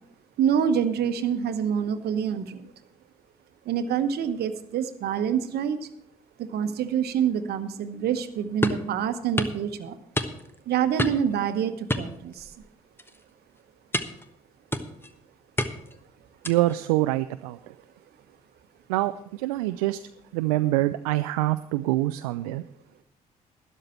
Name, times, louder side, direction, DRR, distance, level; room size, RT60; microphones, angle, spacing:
voice 1, 0.4-2.7 3.6-5.9 6.4-10.0 10.7-12.6, right 8 dB, 60° right, 11 dB, 1.0 m, -26 dB
sound 1, 8.6-8.9 9.4-9.6 10.2-10.6 11.0-11.3 11.9-12.7 13.0-13.2 13.9-14.3 14.7-15.1 15.6-16.0 16.4-16.8, left 1 dB, 10° left, 1.2 m, -29 dB
voice 2, 16.4-17.6 18.9-20.0 20.3-22.6, right 17 dB, 80° right, 11 dB, 0.4 m, -25 dB
12.5 x 11.0 x 4.4 m, 0.71 s
hypercardioid pair, 45°, 18 cm